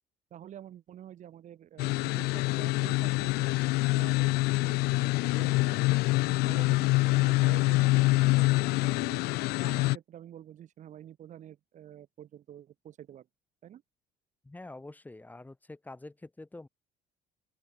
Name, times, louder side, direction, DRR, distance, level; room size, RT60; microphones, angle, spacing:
voice 1, 0.3-3.5 3.9-5.1 5.4-5.8 6.2-9.2 9.6-13.3 13.6-13.8, right 10 dB, 50° right, 5.2 m, -48 dB
sound 1, 1.8-10.0, left 22 dB, 85° left, 1.6 m, -26 dB
voice 2, 14.4-16.7, left 2 dB, 10° left, 7.0 m, -46 dB
open air
cardioid pair, 130°, 16 cm